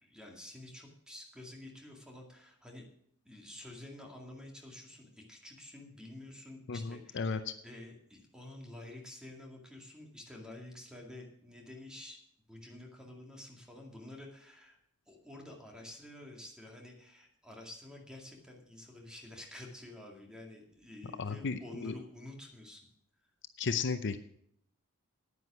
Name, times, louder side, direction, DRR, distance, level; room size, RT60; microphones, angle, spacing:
voice 1, 0.0-2.9 3.2-12.2 12.5-14.8 15.1-22.9, left 1 dB, 5° right, 0 dB, 2.2 m, -50 dB
voice 2, 6.7-7.5 21.2-21.9 23.6-24.2, left 5 dB, 55° left, 10 dB, 0.6 m, -34 dB
9.8 x 9.7 x 6.1 m, 0.67 s
head